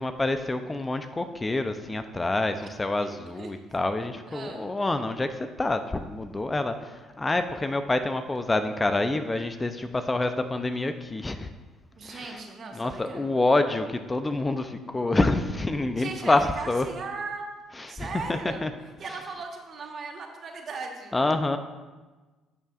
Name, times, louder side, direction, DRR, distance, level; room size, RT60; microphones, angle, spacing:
voice 1, 0.0-11.5 12.0-12.4 12.8-16.9 17.8-18.7 21.1-21.6, left 2 dB, 20° left, 9 dB, 0.5 m, -27 dB
voice 2, 3.0-3.5 4.3-4.6 12.0-13.3 16.0-17.5 17.9-18.6 19.0-21.1, right 4 dB, 50° right, 2 dB, 1.3 m, -38 dB
10.5 x 6.5 x 2.5 m, 1.3 s
supercardioid pair, 65°, 0 cm